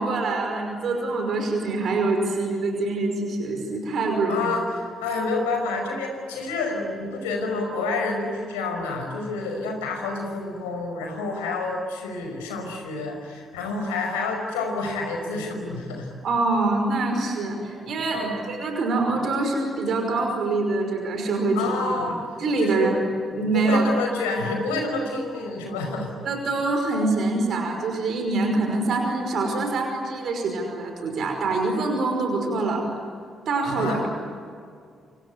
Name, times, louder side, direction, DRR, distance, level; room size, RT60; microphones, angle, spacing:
voice 1, 0.0-4.5 16.2-21.6 21.9-22.1 22.4-23.0 23.3-23.9 26.2-32.9 33.5-34.0, right 3 dB, 55° right, 3 dB, 5.6 m, -25 dB
voice 2, 4.3-16.1 18.1-18.4 21.5-22.1 22.6-22.9 23.5-26.1 33.7-34.1, left 3 dB, 75° left, 3 dB, 5.4 m, -28 dB
27.0 x 26.5 x 8.3 m, 2.2 s
figure-of-eight pair, 40°, 0 cm